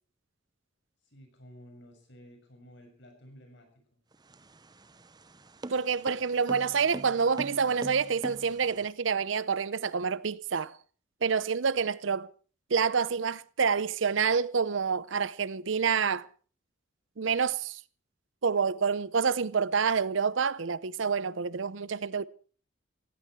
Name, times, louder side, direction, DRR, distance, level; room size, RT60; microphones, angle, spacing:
voice 1, 1.0-3.7, equal, 65° left, 6.9 m, -53 dB
sound 1, 4.1-8.9, right 2 dB, 20° right, 0.7 m, -42 dB
voice 2, 5.7-10.8 11.2-12.3 12.7-16.3 17.2-17.8 18.4-22.2, right 6 dB, 70° right, 0.7 m, -28 dB
17.5 x 16.5 x 4.6 m
head